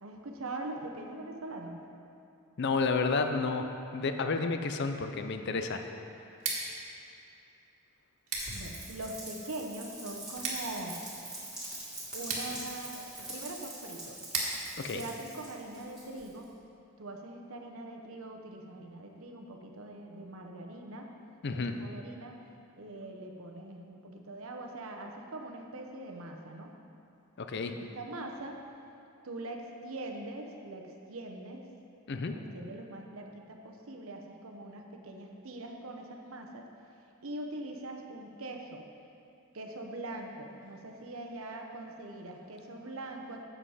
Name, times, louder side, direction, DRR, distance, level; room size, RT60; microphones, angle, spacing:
voice 1, 0.0-1.8 8.5-11.0 12.1-14.2 14.9-16.5 17.0-21.1 21.5-22.4 22.8-26.7 27.8-28.6 29.2-31.6 32.2-36.7 37.2-38.8 39.5-43.4, right 2 dB, 70° right, 2 dB, 0.9 m, -42 dB
voice 2, 2.6-5.8 14.8-15.0 21.4-21.7 27.4-27.8 32.1-32.4, left 4 dB, 50° left, 7 dB, 0.5 m, -31 dB
Scissors, 6.3-16.1, right 3 dB, 90° right, 1.6 m, -41 dB
Rain, 8.4-16.4, right 1 dB, 5° right, 2.1 m, -44 dB
7.9 x 7.5 x 4.9 m, 2.7 s
head